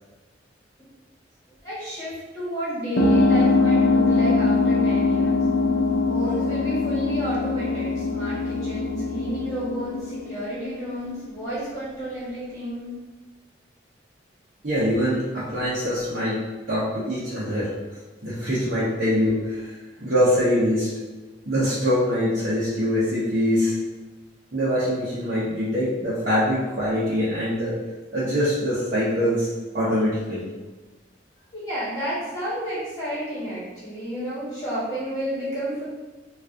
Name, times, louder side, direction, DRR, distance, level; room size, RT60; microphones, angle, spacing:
voice 1, 1.6-5.4 6.1-13.0 31.5-35.8, equal, 20° left, -11 dB, 1.3 m, -31 dB
sound 1, 3.0-11.1, left 3 dB, 80° left, 0.6 m, -22 dB
voice 2, 14.6-16.4 16.7-17.7 18.2-20.9 21.5-23.8 24.5-27.7 28.1-29.5 29.7-30.4, equal, 50° right, -11 dB, 0.9 m, -23 dB
3.0 x 2.5 x 3.6 m, 1.2 s
head